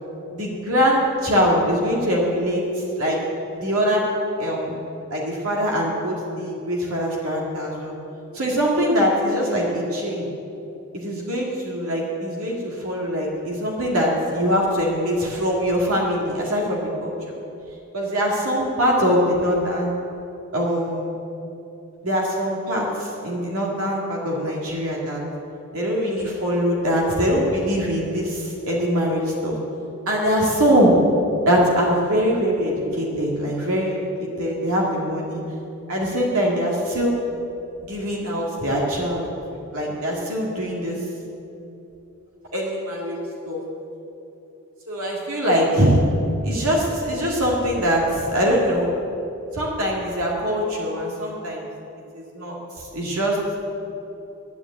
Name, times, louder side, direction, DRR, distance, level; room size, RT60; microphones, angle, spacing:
voice 1, 0.3-3.2 3.6-4.1 4.4-4.7 5.1-7.9 8.3-10.3 10.9-17.3 17.9-19.9 20.5-21.1 22.0-25.2 25.7-29.6 30.1-31.0 31.5-35.4 35.9-37.2 37.8-39.2 39.7-41.0 42.5-43.2 43.4-43.6 44.9-46.0 46.4-48.9 49.5-51.7 52.1-53.4, equal, 80° right, -2 dB, 2.1 m, -22 dB
10.5 x 9.8 x 8.3 m, 2.9 s
head